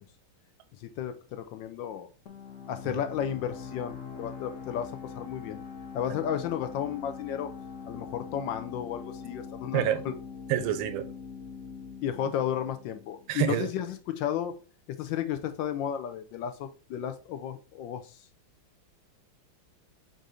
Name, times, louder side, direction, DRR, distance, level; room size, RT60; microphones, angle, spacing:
voice 1, 0.8-2.1 2.7-5.6 5.9-7.5 7.9-10.1 12.0-14.5 14.9-18.2, left 9 dB, 75° left, 9 dB, 1.2 m, -33 dB
sound 1, 2.3-13.6, left 6 dB, 55° left, 0.9 m, -43 dB
voice 2, 9.7-10.0 10.5-11.1 13.3-13.7, right 10 dB, 80° right, 10 dB, 1.4 m, -28 dB
4.1 x 2.6 x 4.8 m, 0.35 s
omnidirectional pair, 2.2 m